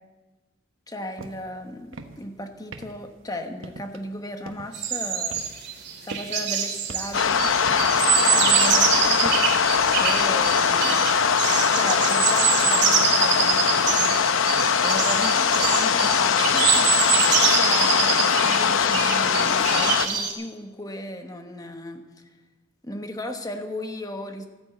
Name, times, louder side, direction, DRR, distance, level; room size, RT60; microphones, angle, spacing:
voice 1, 0.9-5.4 6.0-7.4 8.3-9.4 9.9-11.1 11.7-14.2 14.8-22.2 22.8-24.5, left 1 dB, 20° left, 6 dB, 1.2 m, -36 dB
sound 1, 1.2-1.5 1.8-2.3 2.7-3.2 3.6-4.1 4.5-4.8 5.3-6.5 6.9-8.1 8.5-8.8 9.2-10.4, right 3 dB, 85° right, 1.1 m, -41 dB
sound 2, 4.7-20.3, right 7 dB, 60° right, 2.2 m, -25 dB
sound 3, 7.1-20.1, left 6 dB, 90° left, 0.7 m, -21 dB
13.5 x 9.8 x 8.1 m, 1.2 s
head